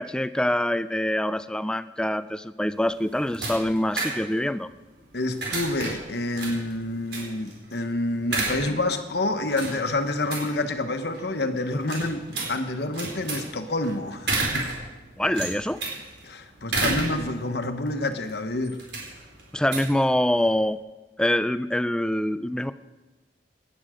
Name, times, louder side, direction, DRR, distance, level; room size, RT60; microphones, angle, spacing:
voice 1, 0.0-4.7 15.2-15.8 19.5-20.8 21.2-22.7, left 1 dB, 5° left, 0.4 m, -25 dB
sound 1, 2.7-20.7, right 3 dB, 80° right, 4.2 m, -33 dB
voice 2, 5.1-14.7 16.2-18.8, left 2 dB, 65° left, 1.2 m, -28 dB
17.5 x 11.0 x 5.0 m
head